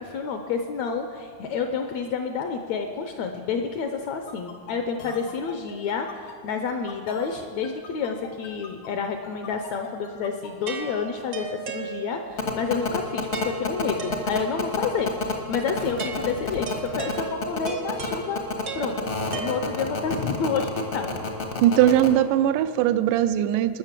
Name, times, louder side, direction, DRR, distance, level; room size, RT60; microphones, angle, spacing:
voice 1, 0.0-18.4 18.7-21.2, left 5 dB, 75° left, 5 dB, 1.7 m, -29 dB
sound 1, 4.3-10.5, left 6 dB, 90° left, 3.0 m, -42 dB
sound 2, 10.7-12.4 13.3-14.7 16.0-20.1, right 6 dB, 65° right, 1.0 m, -36 dB
sound 3, 12.4-22.1, left 4 dB, 55° left, 0.8 m, -28 dB
voice 2, 21.6-23.8, right 11 dB, 85° right, 12 dB, 2.2 m, -20 dB
19.0 x 6.5 x 7.4 m, 2.1 s
omnidirectional pair, 3.7 m